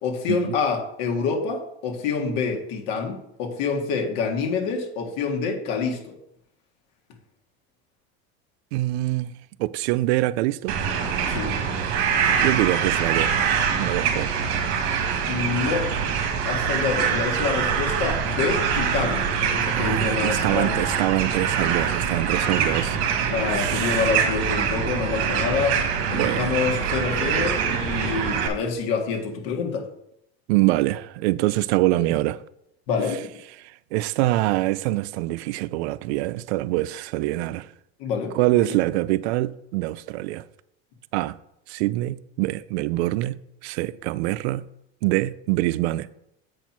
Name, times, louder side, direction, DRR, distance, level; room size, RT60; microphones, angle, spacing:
voice 1, 0.0-6.2 11.3-11.6 15.3-15.9 16.5-20.9 23.3-25.8 26.1-29.8 32.9-33.3 38.0-38.3 38.6-38.8, left 5 dB, 60° left, 1.8 m, -27 dB
voice 2, 8.7-9.3 9.6-10.8 12.4-13.3 13.8-14.3 19.7-23.0 23.5-24.1 26.1-26.5 30.5-32.4 33.9-37.7 38.3-40.4 41.1-41.4 41.7-44.7 45.0-46.1, right 17 dB, 90° right, 0.5 m, -24 dB
sound 1, 10.7-28.5, right 7 dB, 55° right, 1.6 m, -24 dB
7.7 x 4.5 x 5.9 m
cardioid pair, 155°, 32 cm